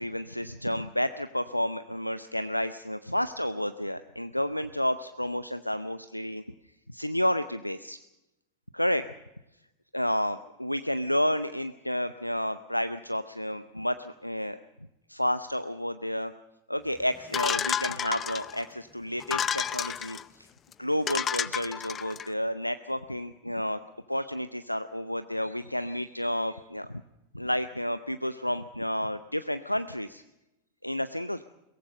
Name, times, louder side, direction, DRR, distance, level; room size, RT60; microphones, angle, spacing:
voice 1, 0.0-6.4 6.9-8.0 8.7-9.0 9.9-14.6 15.1-16.3 16.7-20.5 20.8-23.8 24.1-26.9 27.3-30.2 30.8-31.4, equal, 90° left, 13 dB, 0.6 m, -30 dB
sound 1, 17.3-18.6 19.2-20.2 20.7-20.8 21.1-22.3, left 8 dB, 25° left, 0.7 m, -30 dB
22.5 x 18.0 x 6.6 m, 0.94 s
figure-of-eight pair, 90°, 0 cm